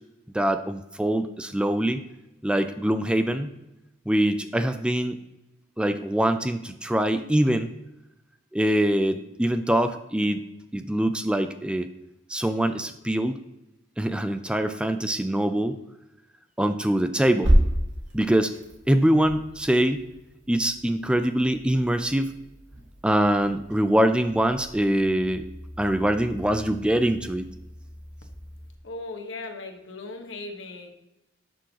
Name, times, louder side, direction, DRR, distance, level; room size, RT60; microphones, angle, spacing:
voice 1, 0.3-2.0 2.4-3.5 4.1-5.2 5.8-7.7 8.5-10.5 10.7-11.9 12.3-13.4 14.0-15.8 16.6-17.5 18.1-18.5 18.9-20.0 20.5-22.3 23.0-25.4 25.8-27.5, right 1 dB, 5° right, 9 dB, 0.3 m, -23 dB
sound 1, 17.3-28.8, equal, 70° right, 1.6 m, -31 dB
voice 2, 28.8-30.9, left 2 dB, 85° left, 4 dB, 1.3 m, -37 dB
11.5 x 6.3 x 2.9 m, 0.93 s
head